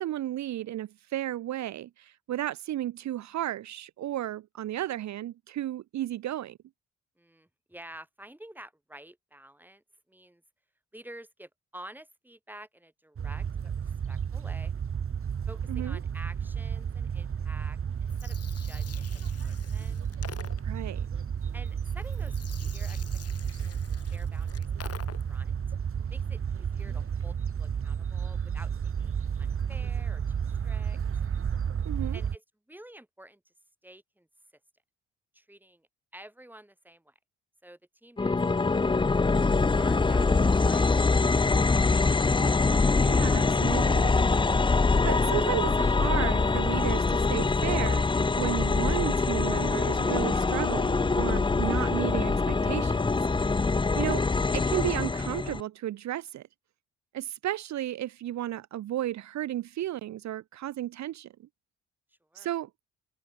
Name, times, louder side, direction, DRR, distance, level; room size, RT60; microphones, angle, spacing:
voice 1, 0.0-6.6 15.7-16.0 20.6-21.1 31.8-32.2 43.0-44.3 45.0-53.0 53.4-53.6 53.9-56.4 57.1-61.3 62.3-62.7, right 13 dB, 65° right, 0.9 m, -33 dB
voice 2, 7.2-10.4 10.9-14.7 15.5-19.1 19.4-20.1 21.5-22.3 22.7-23.0 23.5-24.9 25.3-25.6 26.1-30.4 30.6-31.0 32.1-33.4 33.8-34.3 35.3-35.9 36.1-37.1 37.6-41.3 62.3-62.5, right 1 dB, 5° right, 7.1 m, -50 dB
sound 1, 13.2-32.4, right 7 dB, 45° right, 2.5 m, -32 dB
Gurgling, 17.9-25.5, left 8 dB, 55° left, 4.9 m, -48 dB
sound 2, 38.2-55.6, left 3 dB, 15° left, 0.7 m, -24 dB
cardioid pair, 90°, 30 cm